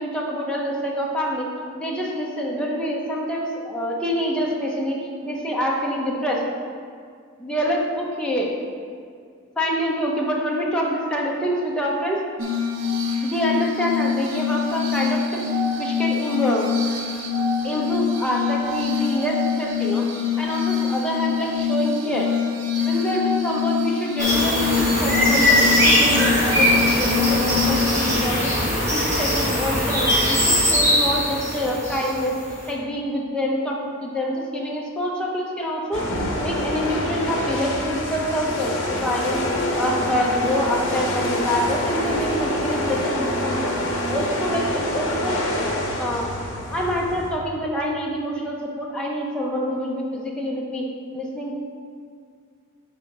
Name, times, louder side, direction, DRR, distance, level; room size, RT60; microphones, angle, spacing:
voice 1, 0.0-1.5 1.7-6.4 7.4-8.5 9.6-12.2 13.2-15.4 15.8-16.7 17.6-20.1 20.4-22.3 22.8-28.5 28.9-32.4 32.7-36.1 36.4-39.4 39.7-43.7 44.1-45.5 46.0-46.3 46.7-50.9 51.1-51.6, equal, 5° left, -3 dB, 0.7 m, -26 dB
Glass, 12.4-28.2, left 6 dB, 60° right, 0.7 m, -25 dB
sound 1, 24.2-32.5, equal, 15° right, 1.2 m, -20 dB
sound 2, 35.9-47.3, left 1 dB, 60° left, 1.1 m, -26 dB
5.7 x 4.0 x 5.8 m, 2.2 s
head